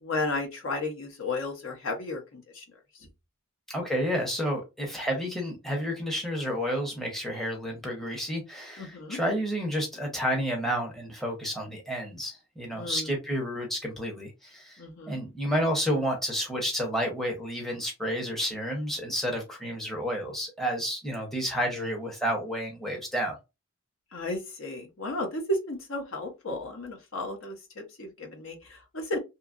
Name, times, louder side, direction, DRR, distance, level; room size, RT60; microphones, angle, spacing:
voice 1, 0.0-2.6 8.8-9.2 12.7-13.1 14.8-15.2 24.1-29.2, left 2 dB, 70° left, 0.8 m, -33 dB
voice 2, 3.7-14.8 15.1-23.3, equal, ahead, 0.7 m, -30 dB
2.8 x 2.3 x 2.4 m
head